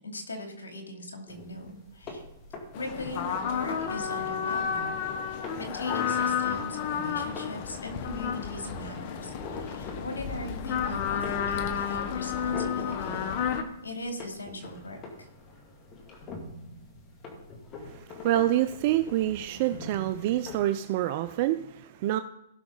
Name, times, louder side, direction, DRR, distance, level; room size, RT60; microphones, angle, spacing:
voice 1, 0.0-2.2 2.8-4.9 5.6-13.3 13.8-15.3, left 1 dB, 90° left, 3 dB, 2.7 m, -40 dB
sound 1, 1.3-20.7, left 3 dB, 30° left, 2.3 m, -45 dB
sound 2, 2.7-13.6, left 7 dB, 45° left, 1.2 m, -31 dB
voice 2, 17.8-22.2, right 13 dB, 45° right, 11 dB, 0.5 m, -27 dB
17.5 x 6.0 x 3.9 m, 0.85 s
hypercardioid pair, 130°, 0 cm